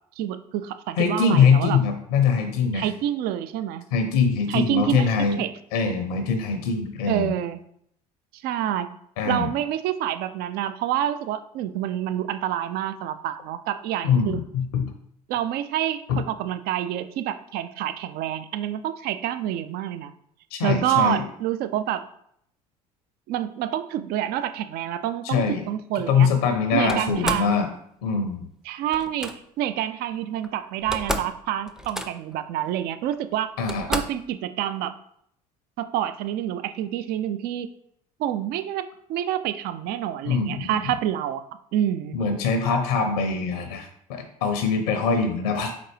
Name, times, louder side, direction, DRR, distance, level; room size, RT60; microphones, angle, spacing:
voice 1, 0.2-1.8 2.7-3.8 4.5-5.1 5.4-5.5 7.1-7.6 8.4-8.9 9.2-14.4 15.3-20.1 20.6-22.1 23.3-26.3 26.7-27.6 28.7-33.5 33.9-34.9 35.8-37.7 38.2-38.8 39.1-41.4 41.7-42.2, right 11 dB, 55° right, 11 dB, 0.4 m, -27 dB
voice 2, 1.0-2.9 3.9-5.4 5.7-7.3 9.2-9.5 14.0-14.9 16.1-16.2 20.5-21.2 25.2-25.6 26.1-27.7 28.0-28.5 33.6-33.9 40.2-40.8 42.1-45.7, left 5 dB, 70° left, 7 dB, 0.6 m, -23 dB
Slam, 26.9-27.5 28.9-29.3 30.4-30.5 30.8-31.4 31.7-32.4 33.1-33.2 33.7-34.3, equal, 5° right, 0.5 m, -30 dB
4.1 x 3.8 x 3.3 m, 0.70 s
figure-of-eight pair, 60°, 20 cm